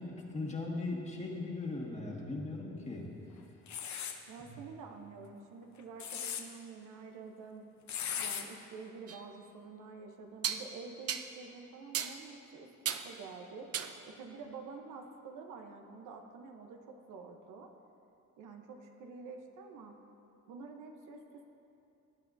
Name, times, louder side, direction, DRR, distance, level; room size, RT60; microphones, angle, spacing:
voice 1, 0.0-3.1 4.4-4.6, left 2 dB, 20° left, -2 dB, 1.8 m, -39 dB
sound 1, 3.7-4.2 5.8-6.4 7.9-8.4, left 8 dB, 65° left, 0.9 m, -37 dB
voice 2, 4.3-7.7 8.1-12.7 13.0-13.7 14.0-17.7 18.4-20.0 20.5-21.5, right 4 dB, 85° right, 4 dB, 1.0 m, -48 dB
sound 2, 9.1-9.2 10.4-10.7 11.1-11.3 11.9-12.2 12.9-13.1 13.7-14.0, right 8 dB, 50° right, 0.6 m, -35 dB
18.5 x 8.7 x 2.7 m, 2.8 s
cardioid pair, 90°, 30 cm